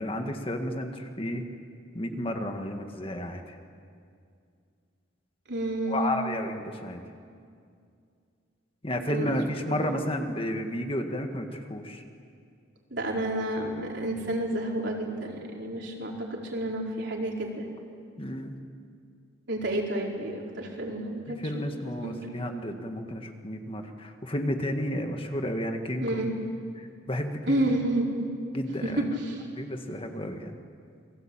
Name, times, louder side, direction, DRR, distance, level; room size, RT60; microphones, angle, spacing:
voice 1, 0.0-1.4 1.9-3.5 5.9-7.0 8.8-12.0 18.2-18.5 21.3-26.3 26.8-27.6 28.5-29.0 29.5-30.5, left 1 dB, 25° left, 5 dB, 1.8 m, -32 dB
voice 2, 5.5-6.1 9.1-9.3 9.6-10.0 12.9-17.6 19.5-21.5 22.0-22.2 26.0-26.3 27.5-28.1 28.8-29.5, right 1 dB, 60° right, -1 dB, 4.8 m, -30 dB
29.0 x 23.0 x 9.0 m, 2.3 s
head